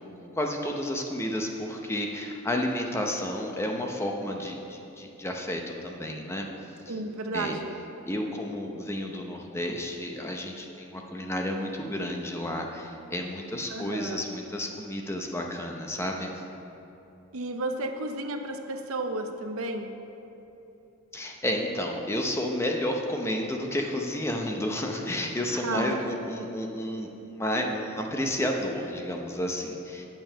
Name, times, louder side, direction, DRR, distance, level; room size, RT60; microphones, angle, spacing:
voice 1, 0.2-6.5 6.9-7.0 7.3-7.6 8.1-16.3 21.1-30.0, left 1 dB, 10° left, 2 dB, 0.7 m, -31 dB
voice 2, 6.9-7.7 13.7-14.2 17.3-19.9 25.6-26.0, right 2 dB, 75° right, 6 dB, 0.7 m, -32 dB
8.8 x 7.0 x 5.6 m, 3.0 s
head